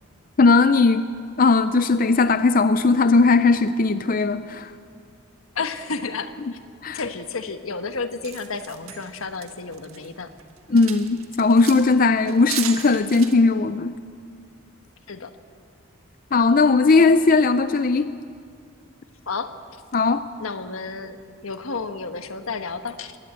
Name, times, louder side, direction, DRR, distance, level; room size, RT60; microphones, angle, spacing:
voice 1, 0.4-1.1 1.4-4.7 6.8-7.0 10.7-13.9 16.3-18.1 19.9-20.2, left 3 dB, 40° left, 12 dB, 0.5 m, -18 dB
voice 2, 5.5-6.6 6.9-10.3 15.1-15.3 19.3-19.8 20.4-21.2 21.4-23.2, left 4 dB, 80° left, 9 dB, 1.3 m, -31 dB
sound 1, 8.2-10.1 10.4-11.9 12.3-13.3, right 10 dB, 90° right, 1.7 m, -35 dB
22.0 x 17.5 x 8.8 m, 2.2 s
head